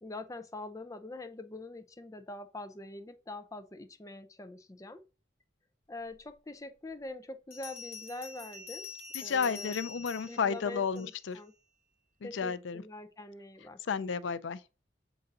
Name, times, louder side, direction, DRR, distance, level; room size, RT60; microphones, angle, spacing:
voice 1, 0.0-5.0 5.9-8.9 9.2-9.8 10.3-11.5 12.2-13.8, left 2 dB, 20° left, 0.5 m, -44 dB
Bell, 6.3-6.4 7.5-11.4, left 5 dB, 35° left, 1.7 m, -46 dB
voice 2, 9.1-11.4 12.2-12.8 13.8-14.6, left 6 dB, 85° left, 0.5 m, -32 dB
6.8 x 4.0 x 3.7 m
head